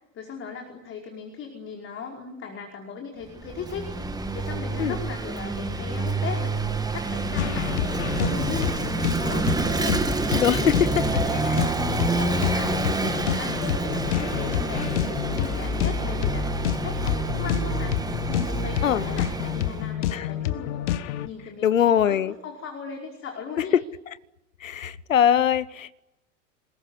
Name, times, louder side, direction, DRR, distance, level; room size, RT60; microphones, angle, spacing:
voice 1, 0.1-7.7 8.1-23.7, left 6 dB, 30° left, 5.2 m, -38 dB
Vehicle / Engine, 3.3-19.9, right 3 dB, 10° right, 2.1 m, -28 dB
sound 1, 7.4-21.3, left 11 dB, 60° left, 1.5 m, -29 dB
voice 2, 10.3-10.7 18.8-19.0 20.1-20.3 21.6-22.3 23.7-23.8 24.6-26.0, left 9 dB, 75° left, 1.0 m, -21 dB
27.5 x 20.5 x 9.8 m
figure-of-eight pair, 85°, 39 cm